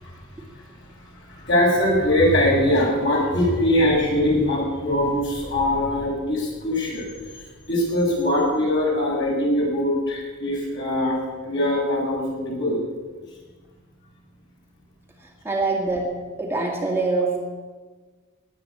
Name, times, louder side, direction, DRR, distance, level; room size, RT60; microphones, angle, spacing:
voice 1, 1.3-7.1 7.7-11.1 11.4-12.8, left 1 dB, 55° left, -3 dB, 7.0 m, -22 dB
voice 2, 15.4-16.1 16.4-17.4, right 3 dB, 10° right, -1 dB, 2.1 m, -24 dB
19.5 x 8.6 x 8.5 m, 1.4 s
head